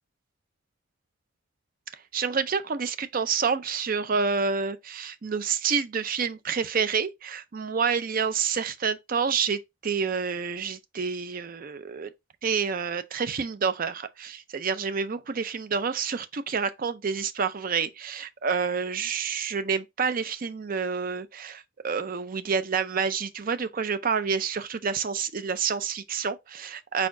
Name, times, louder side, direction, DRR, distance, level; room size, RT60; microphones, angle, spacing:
voice 1, 2.1-12.1 12.4-27.1, right 5 dB, 45° right, 0.5 m, -28 dB
4.7 x 4.2 x 2.6 m
head